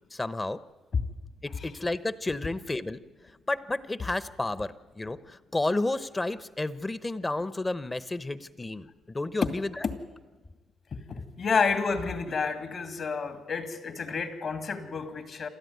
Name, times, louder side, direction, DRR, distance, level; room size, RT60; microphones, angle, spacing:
voice 1, 0.1-0.6 1.4-3.0 3.5-9.7, left 2 dB, 20° left, 15 dB, 0.9 m, -31 dB
voice 2, 11.4-15.5, left 5 dB, 55° left, 8 dB, 2.5 m, -29 dB
27.5 x 13.0 x 9.4 m, 1.3 s
cardioid pair, 90°, 0 cm